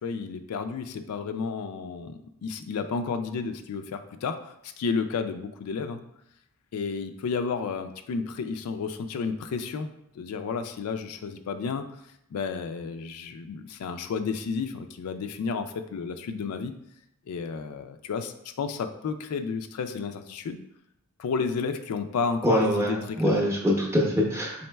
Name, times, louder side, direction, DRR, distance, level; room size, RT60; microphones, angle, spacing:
voice 1, 0.0-6.0 6.7-11.9 12.3-16.7 17.3-20.6 21.2-23.3, left 5 dB, 85° left, 8 dB, 0.3 m, -32 dB
voice 2, 22.4-24.7, equal, 10° right, -1 dB, 0.6 m, -24 dB
4.1 x 3.8 x 2.2 m, 0.77 s
head